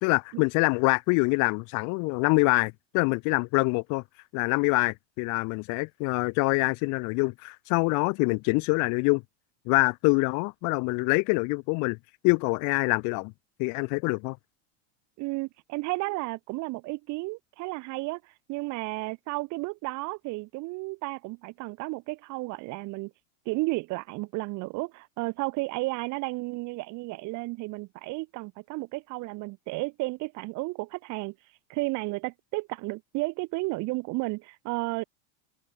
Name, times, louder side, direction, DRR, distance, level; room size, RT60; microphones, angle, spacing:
voice 1, 0.0-4.0 4.3-9.2 9.7-12.0 12.2-13.3 13.6-14.4, left 30 dB, 50° left, 1.0 m, -25 dB
voice 2, 15.2-18.2 18.5-23.1 23.5-31.3 31.7-35.0, right 24 dB, 50° right, 2.0 m, -33 dB
supercardioid pair, 130°, 37 cm